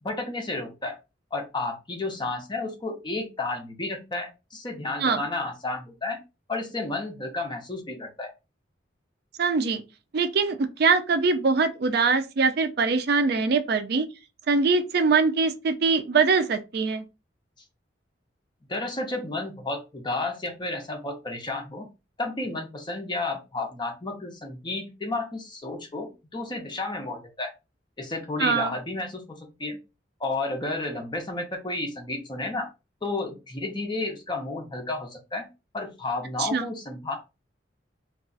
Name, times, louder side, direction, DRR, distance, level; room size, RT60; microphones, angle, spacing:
voice 1, 0.0-1.0 1.3-6.2 6.5-8.3 18.7-21.9 22.2-27.5 28.0-29.8 30.2-32.7 33.0-35.5 35.7-37.2, left 2 dB, 25° left, 0.7 m, -32 dB
voice 2, 9.4-9.8 10.1-14.1 14.5-17.0 28.4-28.8 36.4-36.7, right 4 dB, 60° right, 0.4 m, -23 dB
2.3 x 2.3 x 3.9 m
head